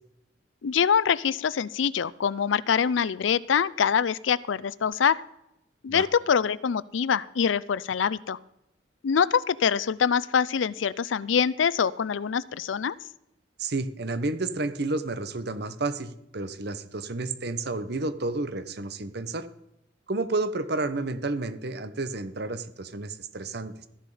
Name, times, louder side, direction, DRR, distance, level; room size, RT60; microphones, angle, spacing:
voice 1, 0.6-5.2 5.8-8.4 9.0-12.9, left 7 dB, 80° left, 19 dB, 0.4 m, -24 dB
voice 2, 13.6-19.5 20.1-23.9, right 2 dB, 55° right, 12 dB, 1.0 m, -31 dB
14.0 x 11.0 x 4.9 m, 0.88 s
head